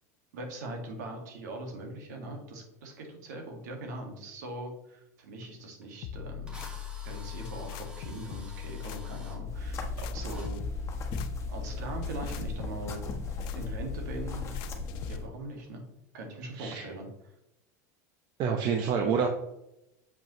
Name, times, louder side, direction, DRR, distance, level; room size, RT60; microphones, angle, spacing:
voice 1, 0.3-6.8 7.0-10.7 11.5-13.0 13.5-14.4 15.1-15.8 16.1-17.1, right 2 dB, 85° right, 3 dB, 1.9 m, -41 dB
Drill, 5.8-5.9 6.5-9.4 10.3-10.5, right 1 dB, 10° right, 1.7 m, -50 dB
sound 1, 6.0-15.2, left 11 dB, 60° left, 0.5 m, -40 dB
sound 2, 9.4-15.3, left 2 dB, 30° left, 1.2 m, -37 dB
voice 2, 16.6-16.9 18.4-19.3, right 6 dB, 50° right, 4 dB, 0.8 m, -27 dB
7.0 x 5.1 x 3.1 m, 0.85 s
supercardioid pair, 115°, 9 cm